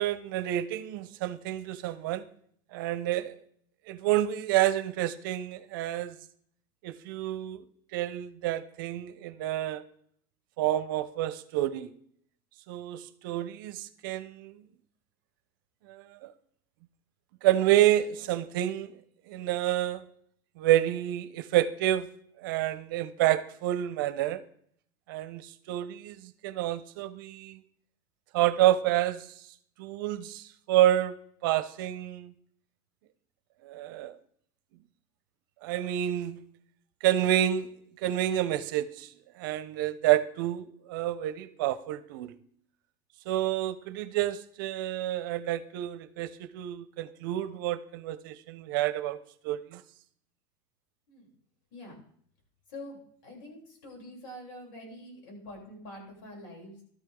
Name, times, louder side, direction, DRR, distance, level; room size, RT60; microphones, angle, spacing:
voice 1, 0.0-2.2 2.7-3.4 3.9-6.2 6.8-7.6 7.9-9.8 10.6-11.9 12.7-14.6 15.9-16.3 17.4-18.9 19.3-20.0 20.6-22.1 22.4-24.4 25.1-27.6 28.3-29.3 29.8-31.2 31.4-32.3 33.6-34.2 35.6-36.4 37.0-37.7 38.0-39.1 39.4-42.3 43.3-49.2 49.4-49.8, right 13 dB, 75° right, 0.9 m, -28 dB
voice 2, 52.7-56.8, left 1 dB, 75° left, 7.9 m, -45 dB
16.0 x 13.0 x 3.9 m
supercardioid pair, 155°, 11 cm